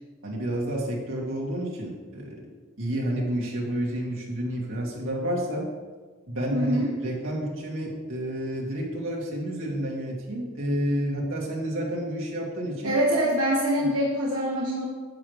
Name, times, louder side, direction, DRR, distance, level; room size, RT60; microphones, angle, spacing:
voice 1, 0.2-2.4 2.8-5.7 6.3-12.9 13.8-13.9, right 1 dB, 70° right, -3 dB, 2.4 m, -30 dB
voice 2, 6.5-6.9 12.8-14.9, equal, 90° right, -5 dB, 1.5 m, -24 dB
11.5 x 8.1 x 3.4 m, 1.4 s
head